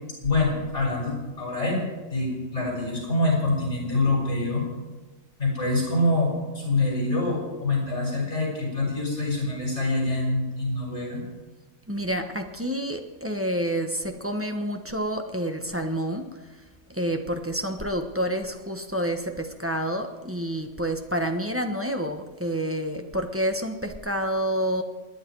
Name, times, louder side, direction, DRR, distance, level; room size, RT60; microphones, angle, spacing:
voice 1, 0.2-4.6 5.4-11.2, left 2 dB, 55° left, -3 dB, 7.1 m, -25 dB
voice 2, 11.9-16.3 16.9-24.8, equal, 10° right, 4 dB, 1.1 m, -28 dB
28.0 x 10.5 x 4.8 m, 1.2 s
omnidirectional pair, 1.5 m